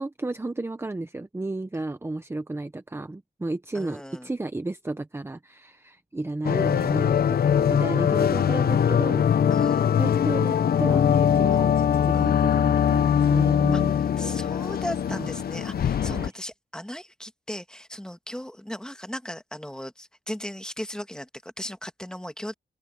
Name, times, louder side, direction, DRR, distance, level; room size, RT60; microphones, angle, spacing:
voice 1, 0.0-9.3 9.9-13.9 15.1-15.3 16.0-16.3, right 2 dB, 15° right, 0.8 m, -33 dB
voice 2, 3.7-4.3 9.5-9.9 11.5-11.6 12.1-12.3 13.7-22.5, equal, 5° left, 1.5 m, -37 dB
sound 1, 6.4-16.3, left 8 dB, 75° left, 0.5 m, -22 dB
open air
wide cardioid pair, 160°, 16 cm